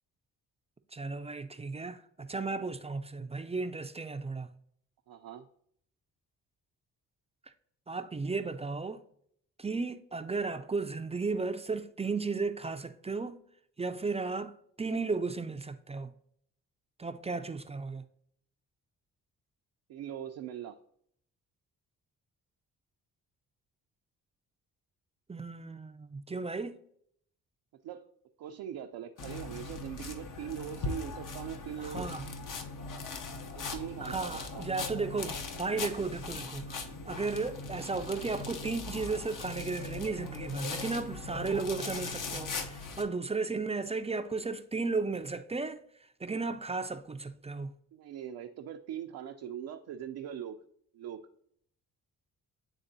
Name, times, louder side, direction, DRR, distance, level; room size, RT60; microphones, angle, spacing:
voice 1, 0.9-4.5 7.9-9.0 9.6-13.4 13.8-16.1 17.0-18.0 25.3-26.8 31.8-32.3 34.0-47.7, right 4 dB, 15° right, 0.4 m, -35 dB
voice 2, 5.1-5.5 19.9-20.8 27.8-28.1 28.4-32.2 33.5-34.7 47.9-50.6 50.9-51.2, right 9 dB, 75° right, 0.5 m, -41 dB
sound 1, 29.2-43.0, left 3 dB, 55° left, 0.8 m, -40 dB
10.0 x 3.5 x 2.7 m
supercardioid pair, 60°, 37 cm